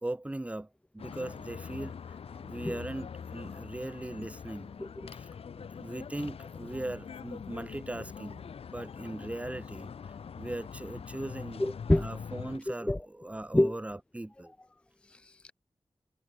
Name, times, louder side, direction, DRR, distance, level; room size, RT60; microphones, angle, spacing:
voice 1, 0.0-2.2 2.4-4.7 5.1-9.9 10.4-11.6 12.0-14.5, right 1 dB, 15° right, 0.8 m, -39 dB
sound 1, 1.0-12.6, left 6 dB, 75° left, 0.4 m, -44 dB
voice 2, 11.6-12.1 12.8-13.0 13.5-13.7 15.1-15.5, left 1 dB, 10° left, 0.4 m, -27 dB
wide cardioid pair, 90°, 10 cm